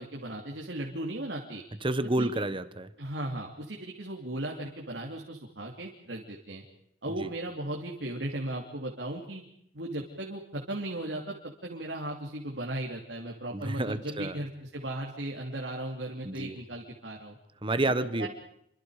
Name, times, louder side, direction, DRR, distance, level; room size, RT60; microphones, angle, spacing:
voice 1, 0.0-1.6 2.2-2.3 3.0-6.6 7.0-9.4 9.7-17.4 18.0-18.3, right 1 dB, 85° right, 0 dB, 3.0 m, -36 dB
voice 2, 1.8-2.9 7.2-7.3 13.5-14.4 16.2-16.6 17.6-18.3, right 2 dB, 30° right, 13 dB, 1.3 m, -29 dB
28.5 x 25.0 x 5.1 m, 0.73 s
head